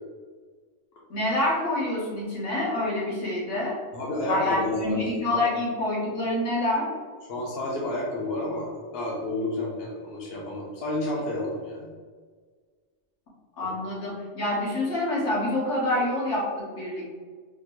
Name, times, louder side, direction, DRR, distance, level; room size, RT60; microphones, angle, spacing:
voice 1, 1.1-3.8 4.2-6.9 13.6-17.1, left 1 dB, 85° left, -5 dB, 1.5 m, -27 dB
voice 2, 3.9-5.4 7.3-11.9, left 1 dB, 60° left, -4 dB, 1.0 m, -30 dB
4.3 x 2.6 x 3.0 m, 1.6 s
omnidirectional pair, 1.2 m